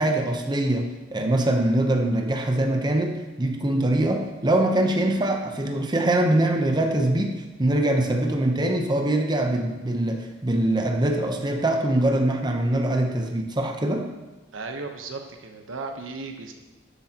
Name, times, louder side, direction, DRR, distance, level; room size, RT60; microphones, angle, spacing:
voice 1, 0.0-14.1, right 1 dB, 20° right, 3 dB, 0.8 m, -23 dB
voice 2, 14.5-16.5, right 3 dB, 85° right, 4 dB, 1.0 m, -35 dB
12.5 x 8.0 x 2.9 m, 1.2 s
head